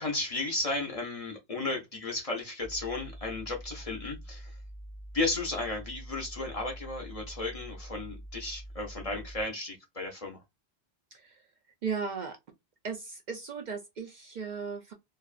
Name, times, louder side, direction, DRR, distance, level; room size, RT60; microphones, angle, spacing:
voice 1, 0.0-4.6 5.1-10.4, left 2 dB, 40° left, 0.6 m, -34 dB
sound 1, 2.6-9.4, right 1 dB, 10° right, 0.7 m, -45 dB
voice 2, 11.1-11.5 11.8-12.4 12.8-14.9, right 5 dB, 55° right, 0.5 m, -36 dB
2.6 x 2.3 x 2.4 m
omnidirectional pair, 1.0 m